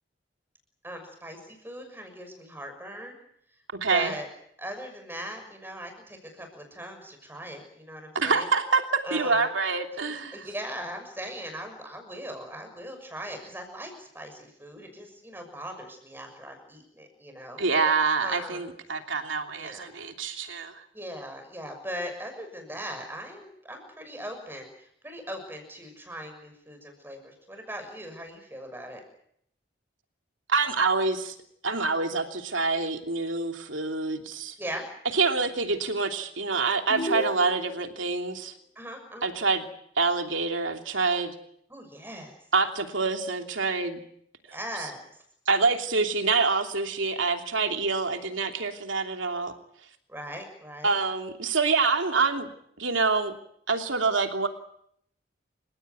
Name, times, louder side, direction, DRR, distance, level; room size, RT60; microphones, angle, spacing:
voice 1, 0.8-3.2 3.9-4.3 4.6-8.5 9.0-9.5 10.3-18.7 19.5-19.9 20.9-29.0 34.6-34.9 38.7-39.3 41.7-42.4 44.5-45.0 50.1-51.0, equal, 10° right, 5 dB, 6.4 m, -39 dB
voice 2, 3.7-4.2 8.1-10.4 17.6-20.8 30.5-31.3 31.6-34.5 35.1-38.5 39.2-39.7 40.0-41.3 42.5-44.0 45.5-49.5 50.8-52.5 52.8-53.3 53.7-54.5, right 4 dB, 85° right, 5 dB, 3.0 m, -26 dB
sound 1, 36.9-37.9, left 1 dB, 35° left, 3.7 m, -33 dB
29.0 x 16.5 x 9.5 m, 0.71 s
head